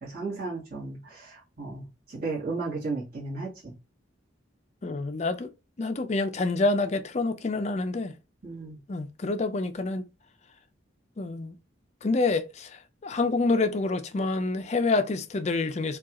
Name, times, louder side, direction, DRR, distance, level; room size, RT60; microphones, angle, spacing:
voice 1, 0.0-3.7 8.4-8.8, right 3 dB, 50° right, 1.6 m, -34 dB
voice 2, 4.8-5.5 5.8-8.2 8.9-10.1 11.2-11.6 12.0-16.0, left 3 dB, 35° left, 0.4 m, -27 dB
4.5 x 2.4 x 2.9 m
head